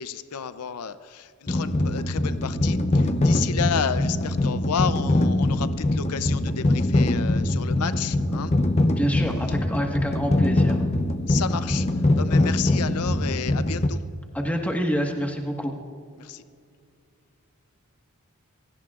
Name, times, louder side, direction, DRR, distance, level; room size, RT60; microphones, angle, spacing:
voice 1, 0.0-8.5 11.3-11.9 12.2-14.0 16.2-16.4, left 7 dB, 90° left, 12 dB, 0.6 m, -31 dB
sound 1, 1.5-13.9, left 1 dB, 30° left, 0.6 m, -23 dB
voice 2, 9.0-10.8 14.3-15.8, equal, 5° left, 1 dB, 1.4 m, -27 dB
27.0 x 17.0 x 2.5 m, 2.3 s
head